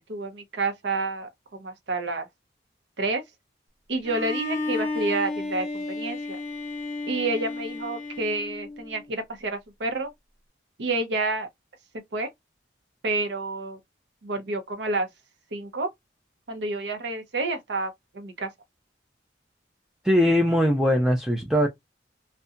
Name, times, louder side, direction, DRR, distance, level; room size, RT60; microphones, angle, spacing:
voice 1, 0.1-2.3 3.0-3.2 3.9-6.4 7.1-10.1 10.8-11.5 12.1-12.3 13.0-13.8 14.2-15.1 15.5-15.9 16.5-18.5, right 2 dB, 70° right, 0.6 m, -29 dB
Bowed string instrument, 4.0-9.1, left 2 dB, 35° left, 0.6 m, -32 dB
voice 2, 20.0-21.7, equal, ahead, 0.3 m, -21 dB
2.7 x 2.1 x 2.4 m
head